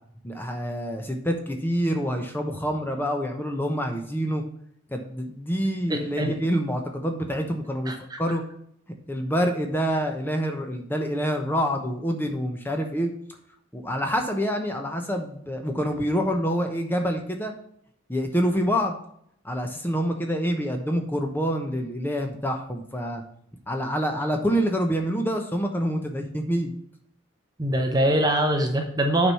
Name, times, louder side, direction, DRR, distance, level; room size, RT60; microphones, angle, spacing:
voice 1, 0.2-4.4 4.9-7.9 8.2-8.4 9.1-13.1 13.7-17.5 18.1-19.0 19.4-23.2 23.7-26.7, equal, 10° left, 4 dB, 0.9 m, -26 dB
voice 2, 5.9-6.3 7.9-8.2 27.6-29.3, right 1 dB, 20° right, 4 dB, 0.8 m, -23 dB
8.6 x 4.8 x 5.6 m, 0.69 s
head